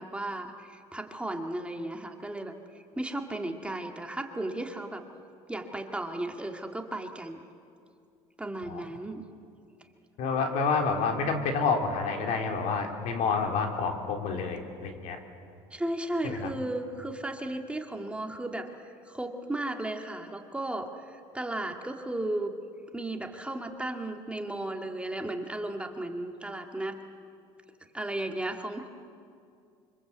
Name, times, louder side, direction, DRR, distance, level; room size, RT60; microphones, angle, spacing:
voice 1, 0.0-5.0 5.5-7.4 8.4-9.3 15.7-22.6 22.9-27.0 27.9-28.9, right 1 dB, 10° right, 4 dB, 2.2 m, -35 dB
voice 2, 10.2-15.2 16.2-16.5, left 5 dB, 70° left, 3 dB, 3.7 m, -28 dB
25.5 x 25.5 x 8.3 m, 2.4 s
supercardioid pair, 95°, 13 cm